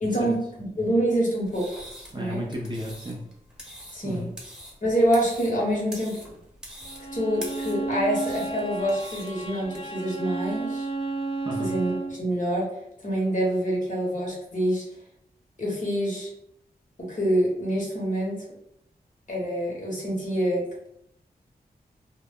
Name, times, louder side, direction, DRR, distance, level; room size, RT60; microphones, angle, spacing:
voice 1, 0.0-1.8 2.1-2.4 3.9-4.3 4.8-6.2 7.1-10.9 11.6-12.7 13.0-14.8 15.6-16.3 17.0-18.4 19.3-20.9, right 1 dB, 50° left, -3 dB, 1.1 m, -26 dB
sound 1, 1.4-9.8, equal, 5° right, 0.9 m, -44 dB
voice 2, 2.1-3.2 4.0-4.3 11.4-11.7, equal, 30° right, -2 dB, 0.5 m, -33 dB
Bowed string instrument, 6.8-12.2, right 3 dB, 35° left, 0.4 m, -32 dB
2.2 x 2.0 x 3.5 m, 0.74 s
cardioid pair, 70°, 17 cm